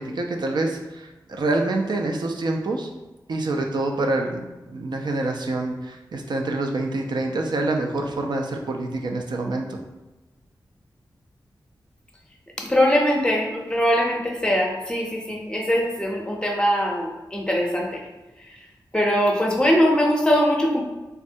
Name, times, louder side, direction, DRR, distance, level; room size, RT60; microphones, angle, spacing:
voice 1, 0.0-2.9 3.3-9.8, right 2 dB, 65° right, 2 dB, 0.4 m, -26 dB
voice 2, 12.6-18.0 18.5-18.6 18.9-20.8, equal, 10° left, -1 dB, 0.6 m, -21 dB
3.4 x 2.1 x 2.6 m, 1.1 s
cardioid pair, 65°, 8 cm